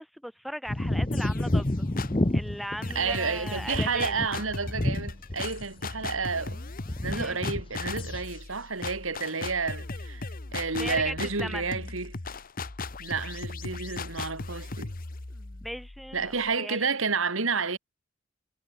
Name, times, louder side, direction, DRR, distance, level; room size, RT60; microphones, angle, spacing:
voice 1, 0.0-1.9 2.3-4.2 7.1-7.4 10.7-11.7 15.3-16.9, equal, ahead, 1.6 m, -38 dB
sound 1, 0.7-5.6 5.9-6.6 6.8-7.6 7.9-8.3, left 1 dB, 25° left, 1.0 m, -29 dB
sound 2, 1.1-2.3 2.8-16.5, left 3 dB, 45° left, 1.2 m, -38 dB
voice 2, 2.9-6.6 7.0-12.2 13.0-14.9 16.1-17.8, right 4 dB, 80° right, 2.6 m, -30 dB
head